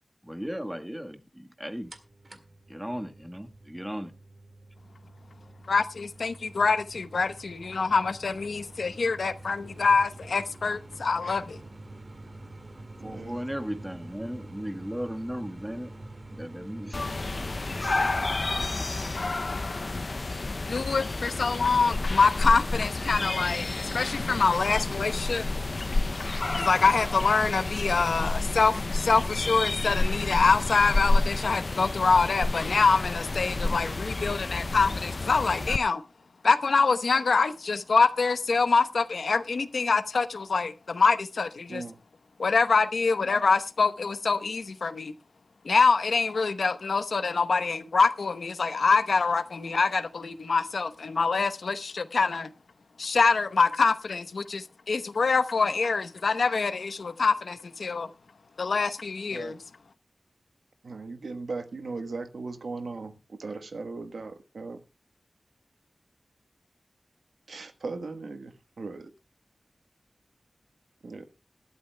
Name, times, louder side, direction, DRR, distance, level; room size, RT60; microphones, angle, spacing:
voice 1, 0.2-1.9 2.7-4.1 13.0-15.9 16.3-17.0 17.4-17.5 17.7-18.2 18.6-18.9, equal, 5° right, 1.4 m, -36 dB
sound 1, 1.9-18.7, right 2 dB, 40° right, 1.9 m, -46 dB
voice 2, 5.7-11.6 20.7-25.5 26.6-36.0 36.4-41.8 42.4-45.1 45.6-52.5 53.0-58.1 58.6-59.6, left 4 dB, 80° left, 0.9 m, -25 dB
voice 3, 13.0-13.4 17.9-18.0 41.7-41.9 59.3-59.6 60.8-64.8 67.5-69.1 71.0-71.2, right 3 dB, 85° right, 1.3 m, -38 dB
sound 2, 16.9-35.8, left 2 dB, 45° left, 0.5 m, -30 dB
19.5 x 12.5 x 2.2 m
wide cardioid pair, 95°, 0 cm